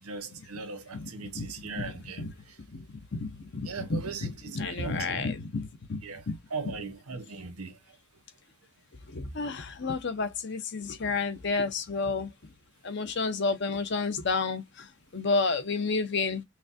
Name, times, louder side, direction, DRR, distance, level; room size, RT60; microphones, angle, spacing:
voice 1, 0.0-2.6 3.6-5.3 6.0-7.8, right 4 dB, 85° right, 1.0 m, -39 dB
voice 2, 0.9-2.3 2.7-2.8 3.1-6.4 9.1-12.3 12.8-14.9 15.1-16.4, left 4 dB, 50° left, 0.6 m, -31 dB
5.8 x 2.2 x 2.6 m
head